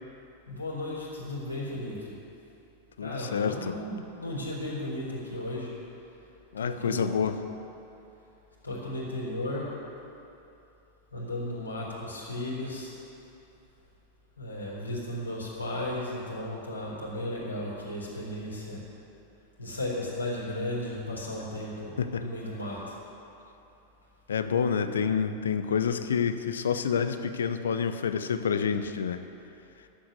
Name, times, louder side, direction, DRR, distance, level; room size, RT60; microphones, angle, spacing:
voice 1, 0.5-2.2 3.0-5.7 6.6-7.2 8.6-9.7 11.1-13.0 14.4-18.8 19.6-23.0, left 1 dB, 85° left, -6 dB, 4.1 m, -35 dB
voice 2, 3.0-3.8 6.5-7.4 22.0-22.3 24.3-29.2, left 6 dB, 65° left, 10 dB, 0.8 m, -28 dB
11.5 x 8.6 x 9.3 m, 2.8 s
figure-of-eight pair, 90°, 0 cm